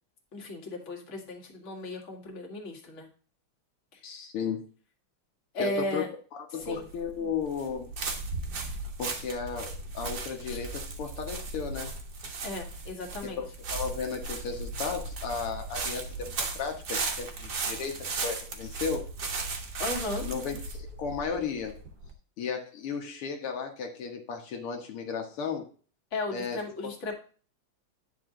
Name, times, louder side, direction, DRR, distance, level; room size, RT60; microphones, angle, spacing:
voice 1, 0.3-3.1 5.5-6.1 6.6-6.9 10.5-10.6 12.4-13.4 19.8-20.2 26.1-27.1, left 2 dB, 35° left, 0 dB, 2.1 m, -35 dB
voice 2, 4.0-4.6 5.6-6.1 6.5-7.9 9.0-11.9 13.2-13.5 13.7-19.1 20.2-21.8 22.4-25.7 26.3-26.6 27.1-27.2, left 6 dB, 80° left, 2 dB, 2.2 m, -34 dB
sound 1, 6.6-22.1, right 3 dB, 50° right, 1.8 m, -36 dB
9.9 x 4.8 x 3.7 m, 0.39 s
omnidirectional pair, 2.4 m